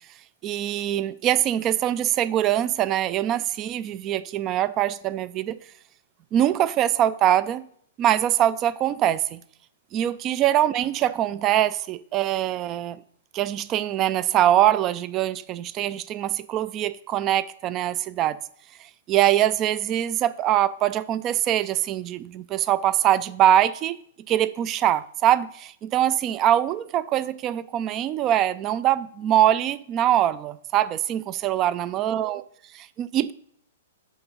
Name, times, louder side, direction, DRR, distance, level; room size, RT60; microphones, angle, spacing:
voice 1, 0.4-5.6 6.3-7.7 8.0-9.4 9.9-13.0 13.3-18.4 18.8-24.0 24.3-32.4 32.7-33.3, right 12 dB, 30° right, 0.3 m, -23 dB
7.0 x 3.7 x 5.2 m
figure-of-eight pair, 110°, 0 cm